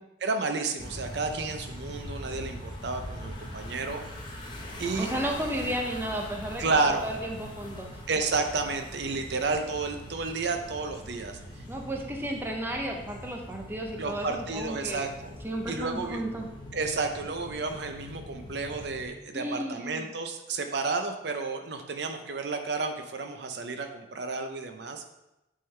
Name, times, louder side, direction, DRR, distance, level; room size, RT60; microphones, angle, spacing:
voice 1, 0.2-4.0 4.8-5.1 6.6-7.1 8.1-11.6 14.0-15.3 15.7-16.2 16.7-25.0, right 3 dB, 60° right, 6 dB, 0.6 m, -31 dB
sound 1, 0.8-19.1, left 1 dB, 25° left, 0.9 m, -42 dB
voice 2, 5.0-7.9 11.7-15.1 15.4-16.5 19.3-20.1, right 1 dB, 10° right, 1 dB, 0.6 m, -33 dB
8.5 x 3.7 x 3.3 m, 0.93 s
head